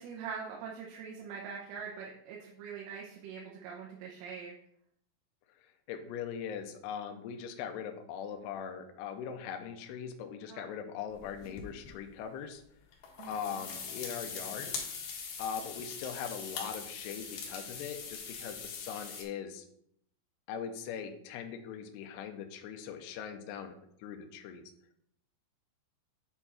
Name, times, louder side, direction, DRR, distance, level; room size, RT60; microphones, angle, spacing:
voice 1, 0.0-4.6 10.5-10.7 13.2-13.6, right 6 dB, 80° right, -3 dB, 3.6 m, -43 dB
voice 2, 5.9-12.6 13.3-14.7 15.4-19.7 20.5-23.7 24.0-24.6, left 7 dB, 80° left, 5 dB, 2.4 m, -40 dB
sound 1, 11.1-11.9 12.9-19.2, left 5 dB, 65° left, 2.7 m, -42 dB
9.0 x 4.5 x 4.2 m, 0.70 s
omnidirectional pair, 5.7 m